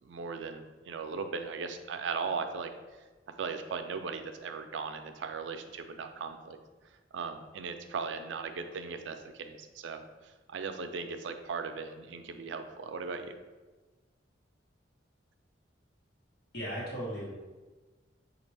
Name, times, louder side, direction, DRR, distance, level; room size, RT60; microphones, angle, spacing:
voice 1, 0.0-2.7 3.3-6.6 7.1-13.4, right 5 dB, 80° right, 7 dB, 0.4 m, -38 dB
voice 2, 16.5-17.3, equal, 55° left, -7 dB, 1.3 m, -36 dB
5.9 x 2.4 x 3.3 m, 1.3 s
head